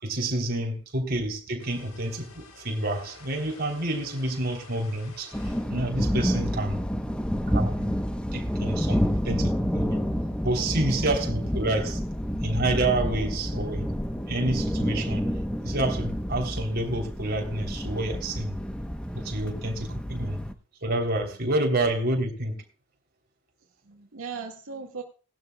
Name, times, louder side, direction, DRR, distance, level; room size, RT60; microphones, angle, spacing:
voice 1, 0.0-6.8 7.5-8.0 8.3-9.9 10.4-12.0 12.4-13.8 14.3-15.3 15.6-18.6 19.1-20.4 20.8-22.6, right 1 dB, 45° right, 3.2 m, -28 dB
sound 1, 1.6-5.7, left 3 dB, 80° left, 4.1 m, -49 dB
sound 2, 5.3-20.5, equal, 5° left, 0.9 m, -29 dB
voice 2, 12.9-13.3 23.8-25.0, right 5 dB, 80° right, 1.9 m, -39 dB
19.5 x 12.0 x 2.3 m
head